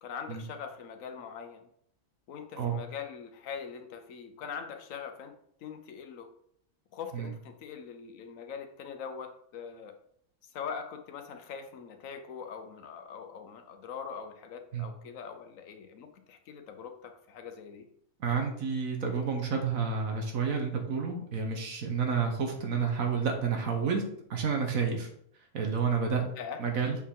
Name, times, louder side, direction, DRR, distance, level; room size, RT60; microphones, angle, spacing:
voice 1, 0.0-1.7 2.3-5.4 5.6-6.3 6.9-9.9 10.4-17.9 26.4-26.6, left 6 dB, 75° left, 7 dB, 1.2 m, -42 dB
voice 2, 18.2-24.0 24.3-25.1 25.5-26.2 26.6-27.0, right 5 dB, 85° right, 3 dB, 1.5 m, -30 dB
7.0 x 4.6 x 3.7 m, 0.69 s
omnidirectional pair, 1.4 m